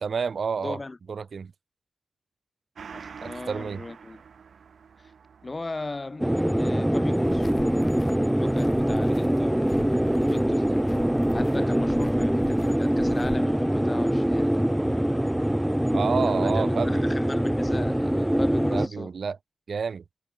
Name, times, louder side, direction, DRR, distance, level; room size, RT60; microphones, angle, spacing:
voice 1, 0.0-0.8 1.1-1.5 3.2-3.8 15.9-17.1 18.7-19.4 19.7-20.0, right 5 dB, 65° right, 0.5 m, -29 dB
voice 2, 0.6-1.0 2.9-4.2 5.4-7.5 8.4-10.8 11.3-14.6 16.2-19.1, left 2 dB, 25° left, 1.7 m, -37 dB
Gong, 2.7-11.7 12.1-12.2, right 6 dB, 90° right, 2.9 m, -49 dB
sound 1, 6.2-18.9, equal, 5° right, 0.3 m, -24 dB
sound 2, 7.2-13.4, left 4 dB, 40° left, 4.2 m, -44 dB
wide cardioid pair, 175°, 0 cm